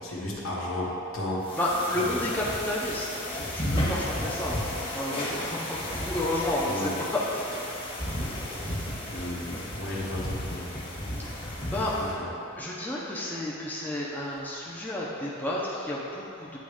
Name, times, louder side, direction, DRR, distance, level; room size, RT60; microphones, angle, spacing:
voice 1, 0.0-1.6 1.9-2.2 6.7-7.0 9.1-10.8 11.9-12.3, left 1 dB, 75° left, -5 dB, 1.2 m, -34 dB
sound 1, 1.4-12.1, left 1 dB, 25° left, 1.3 m, -33 dB
voice 2, 1.5-4.6 4.9-7.6 11.7-12.2 12.6-16.6, left 1 dB, 10° left, -6 dB, 0.6 m, -31 dB
9.2 x 3.1 x 4.9 m, 2.8 s
head